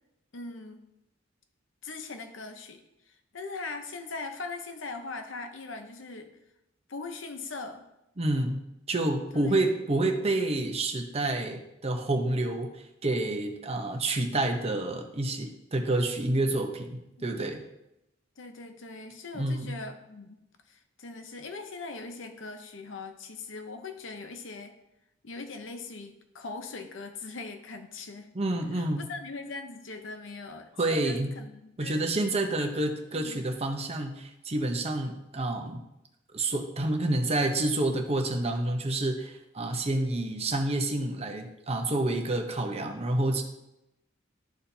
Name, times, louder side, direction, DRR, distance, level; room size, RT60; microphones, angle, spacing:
voice 1, 0.3-0.8 1.8-6.3 6.9-7.9 9.3-9.6 17.2-17.5 18.4-20.4 20.7-24.7 25.2-28.3 28.7-32.1 32.6-32.9 33.1-33.4, left 3 dB, 70° left, 7 dB, 0.8 m, -41 dB
voice 2, 8.2-8.6 8.9-17.6 19.3-19.8 28.3-29.0 30.8-31.3 31.8-35.8 36.3-43.4, right 2 dB, 35° right, 4 dB, 0.9 m, -28 dB
12.5 x 4.3 x 2.8 m, 0.88 s
head